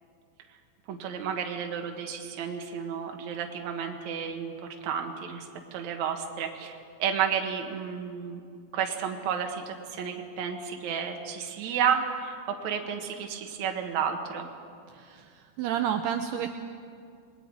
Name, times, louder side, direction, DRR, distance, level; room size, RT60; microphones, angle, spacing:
voice 1, 0.9-4.5 4.8-8.4 8.7-12.4 12.6-14.5, right 7 dB, 60° right, 3 dB, 2.0 m, -31 dB
voice 2, 14.9-16.6, right 9 dB, 85° right, 6 dB, 2.3 m, -31 dB
28.0 x 21.5 x 4.8 m, 2.3 s
omnidirectional pair, 5.4 m